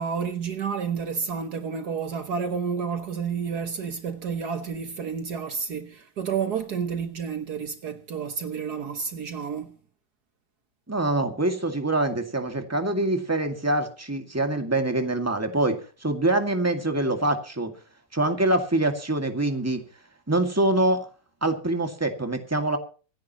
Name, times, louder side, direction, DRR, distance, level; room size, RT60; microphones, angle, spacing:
voice 1, 0.0-9.7, right 6 dB, 65° right, 1.6 m, -30 dB
voice 2, 10.9-17.7 18.1-19.8 20.3-21.1 21.4-22.8, right 2 dB, 10° right, 2.1 m, -25 dB
26.0 x 10.5 x 3.0 m
omnidirectional pair, 1.9 m